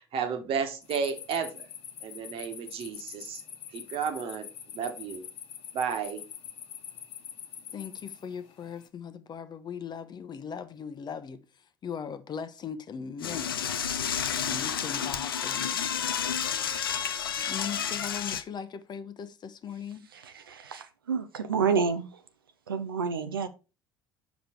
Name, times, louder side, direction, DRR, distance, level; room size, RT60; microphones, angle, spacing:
voice 1, 0.0-1.7 2.0-3.4 3.7-5.3 5.7-6.2, right 6 dB, 55° right, 1.3 m, -33 dB
sound 1, 0.8-8.9, left 9 dB, 55° left, 1.3 m, -44 dB
voice 2, 7.7-11.4 11.8-13.6 14.3-15.8 17.3-20.1, left 7 dB, 40° left, 0.9 m, -39 dB
Door / Toilet flush, 13.2-18.4, left 8 dB, 85° left, 0.5 m, -30 dB
voice 3, 20.1-22.1 22.7-23.5, right 6 dB, 90° right, 0.6 m, -29 dB
5.2 x 5.0 x 4.5 m
hypercardioid pair, 65°, 11 cm